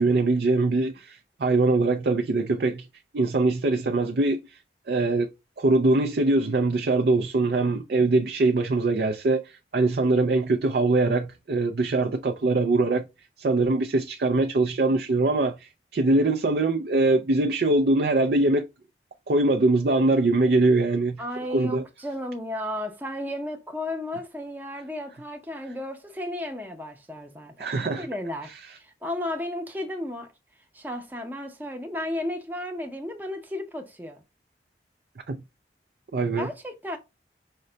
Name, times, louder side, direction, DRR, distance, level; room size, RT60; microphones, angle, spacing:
voice 1, 0.0-2.9 3.1-4.6 4.9-5.3 5.6-13.1 13.4-18.7 19.3-21.2 21.5-21.8 27.6-28.1 35.3-35.4 36.1-36.5, right 2 dB, 60° right, 0.4 m, -22 dB
voice 2, 21.2-28.5 28.8-30.3 30.7-34.2 36.4-37.0, left 1 dB, 10° right, 0.7 m, -34 dB
5.1 x 2.2 x 3.8 m
head